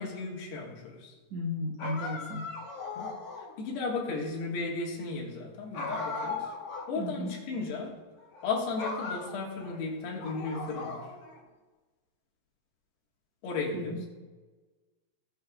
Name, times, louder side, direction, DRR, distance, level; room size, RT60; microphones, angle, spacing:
voice 1, 0.0-1.2 3.0-3.1 3.4-6.5 6.9-7.9 8.4-11.1 13.4-14.1, left 3 dB, 80° left, -1 dB, 3.9 m, -35 dB
voice 2, 1.3-2.5 7.0-7.3 13.7-14.1, left 1 dB, 65° right, -2 dB, 1.8 m, -34 dB
sound 1, 1.8-3.6 5.7-6.9 7.2-7.3 8.2-8.5 8.8-9.8 10.2-11.4, left 4 dB, 50° left, 3.4 m, -37 dB
18.0 x 8.5 x 2.4 m, 1.3 s
omnidirectional pair, 4.7 m